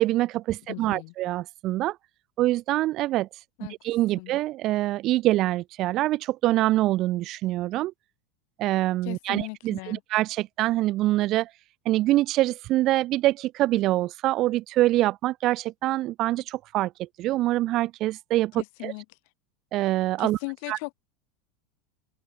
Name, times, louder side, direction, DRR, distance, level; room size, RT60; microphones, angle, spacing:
voice 1, 0.0-2.0 2.4-3.3 3.8-7.9 8.6-11.5 11.8-18.9 19.7-20.4 20.7-20.8, right 16 dB, 35° right, 1.5 m, -25 dB
voice 2, 0.7-1.1 3.6-3.7 4.2-4.3 9.0-10.0 18.6-19.0 20.2-20.9, left 36 dB, 50° left, 4.9 m, -37 dB
supercardioid pair, 170°, 0 cm